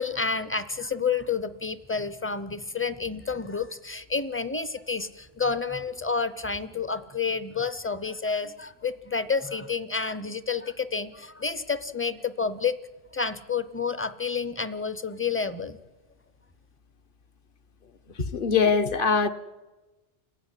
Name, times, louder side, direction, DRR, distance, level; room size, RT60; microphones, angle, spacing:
voice 1, 0.0-12.8 13.1-15.8, left 5 dB, 15° left, 0.6 m, -29 dB
voice 2, 18.3-19.3, left 5 dB, 50° left, 1.2 m, -22 dB
28.5 x 16.0 x 9.9 m
omnidirectional pair, 1.1 m